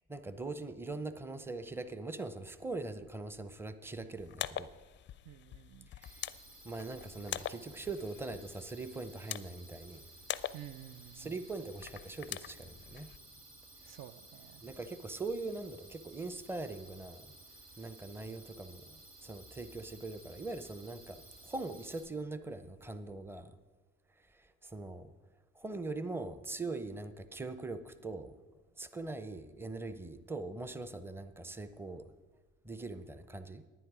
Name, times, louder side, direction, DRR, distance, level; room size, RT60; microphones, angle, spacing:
voice 1, 0.1-4.7 6.0-6.3 6.6-10.0 11.2-13.1 14.6-17.3 17.8-23.6 24.2-25.1 25.5-28.3 28.8-32.1 32.6-33.6, right 3 dB, 5° right, 12 dB, 0.6 m, -42 dB
sound 1, 4.2-13.2, left 11 dB, 35° left, 0.4 m, -44 dB
voice 2, 5.2-5.9 10.5-11.4 13.8-14.6, right 12 dB, 55° right, 13 dB, 0.5 m, -51 dB
sound 2, 6.0-22.0, right 2 dB, 85° right, 4.1 m, -56 dB
11.0 x 9.7 x 4.9 m, 1.3 s
supercardioid pair, 90°, 32 cm